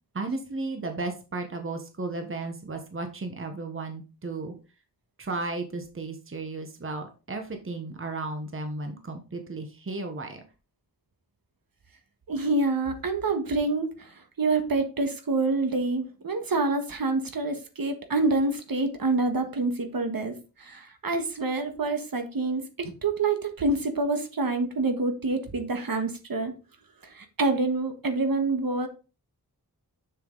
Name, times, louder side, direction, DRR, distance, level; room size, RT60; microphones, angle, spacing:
voice 1, 0.1-4.5 5.2-10.4, right 3 dB, 35° right, 5 dB, 1.2 m, -34 dB
voice 2, 12.3-26.5 27.0-28.9, right 3 dB, 65° right, 6 dB, 1.6 m, -27 dB
6.9 x 6.9 x 3.9 m, 0.32 s
wide cardioid pair, 115°, 38 cm